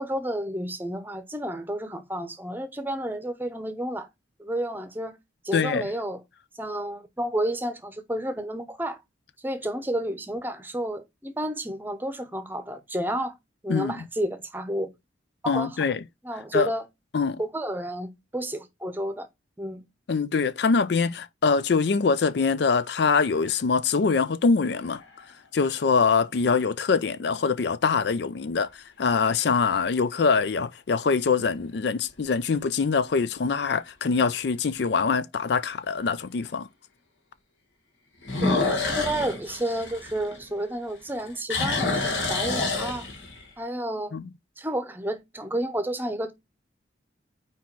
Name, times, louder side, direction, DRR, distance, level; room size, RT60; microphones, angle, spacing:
voice 1, 0.0-4.1 4.4-5.2 5.4-6.2 6.5-9.0 9.4-13.3 13.6-14.9 15.4-15.8 16.2-16.9 17.4-19.3 19.6-19.8 27.2-27.3 38.4-43.1 43.6-44.1 44.6-46.3, right 1 dB, 10° right, 0.8 m, -31 dB
voice 2, 5.5-5.9 13.7-14.0 15.5-16.0 16.5-16.7 17.1-17.4 20.1-25.0 25.5-36.7 44.1-44.2, left 5 dB, 60° left, 0.4 m, -24 dB
sound 1, 24.6-25.2 25.9-26.0 31.2-31.7 32.2-32.3 32.8-32.9 33.2-33.3 34.8-34.9 38.2-40.8 41.1-43.5, left 3 dB, 80° left, 1.9 m, -28 dB
4.7 x 4.1 x 5.9 m
head